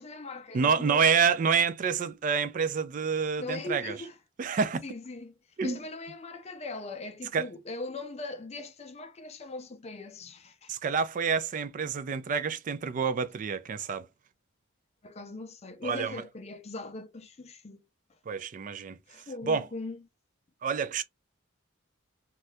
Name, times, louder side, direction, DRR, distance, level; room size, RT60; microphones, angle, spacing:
voice 1, 0.0-1.1 3.4-4.2 4.8-5.3 5.6-10.7 15.0-17.8 19.1-20.0, left 2 dB, 30° left, 0.5 m, -40 dB
voice 2, 0.5-4.0 4.4-4.8 5.6-5.8 7.3-7.5 10.7-14.1 15.8-16.2 18.3-19.0 19.5-19.7 20.6-21.0, right 6 dB, 40° right, 0.3 m, -28 dB
2.7 x 2.3 x 3.2 m
head